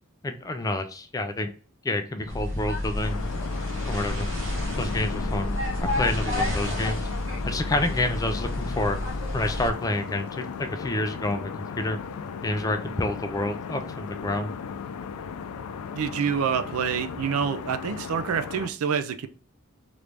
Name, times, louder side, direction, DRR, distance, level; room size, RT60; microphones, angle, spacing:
voice 1, 0.2-1.5 1.8-3.2 3.9-4.3 4.8-7.1 7.4-9.0 9.3-12.0 12.4-14.5, left 2 dB, 15° left, 0.3 m, -28 dB
sound 1, 2.3-9.7, left 1 dB, 60° right, 0.9 m, -30 dB
sound 2, 3.0-18.7, left 6 dB, 90° left, 0.4 m, -36 dB
voice 2, 16.0-19.3, right 7 dB, 75° right, 0.4 m, -27 dB
3.1 x 2.5 x 3.3 m
head